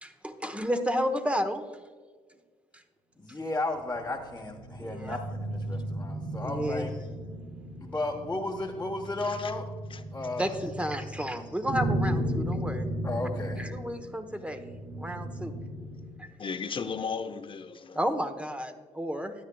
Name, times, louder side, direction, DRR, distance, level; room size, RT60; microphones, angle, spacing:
voice 1, 0.0-1.6 4.8-5.2 6.4-6.9 10.4-12.9 13.6-14.6 15.0-15.6 16.2-16.3 17.9-19.3, equal, 10° right, 1.1 m, -32 dB
voice 2, 3.2-7.0 7.8-9.7 10.1-10.6 13.0-13.6, left 2 dB, 15° left, 1.2 m, -34 dB
sound 1, 3.6-16.2, right 1 dB, 70° right, 1.6 m, -35 dB
voice 3, 9.2-9.5 9.9-10.0 16.4-18.0, left 5 dB, 40° left, 0.7 m, -35 dB
13.0 x 9.9 x 2.3 m
supercardioid pair, 55°, 13 cm